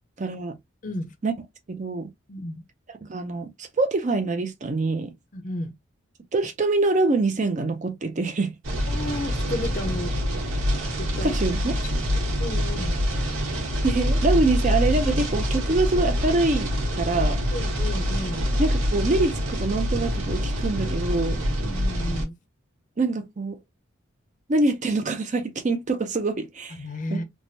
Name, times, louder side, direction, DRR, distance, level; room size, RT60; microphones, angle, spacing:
voice 1, 0.2-0.6 1.2-1.3 1.7-2.1 3.0-5.1 6.3-8.5 11.2-11.8 13.8-16.7 17.0-17.4 18.6-21.4 23.0-23.6 24.5-26.8 27.1-27.2, right 3 dB, 35° right, 0.5 m, -25 dB
voice 2, 2.3-2.6 5.3-5.7 8.9-10.1 11.0-11.4 12.1-13.0 17.5-18.5 21.5-22.4 26.8-27.2, left 1 dB, 40° left, 0.5 m, -33 dB
sound 1, 8.6-22.3, equal, 80° right, 1.2 m, -25 dB
3.3 x 2.1 x 2.6 m
head